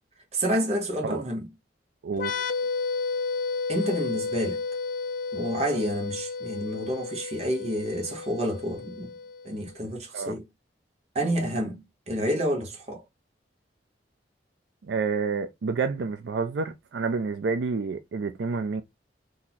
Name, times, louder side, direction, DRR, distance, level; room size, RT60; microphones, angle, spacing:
voice 1, 0.3-1.5 3.7-4.6 5.3-9.1 9.4-10.5 11.1-13.0, equal, 35° right, 1.0 m, -29 dB
voice 2, 2.0-2.3 10.1-10.4 14.8-18.8, right 4 dB, 75° right, 0.4 m, -29 dB
sound 1, 2.1-9.6, left 4 dB, 50° left, 0.4 m, -32 dB
2.9 x 2.7 x 3.9 m
head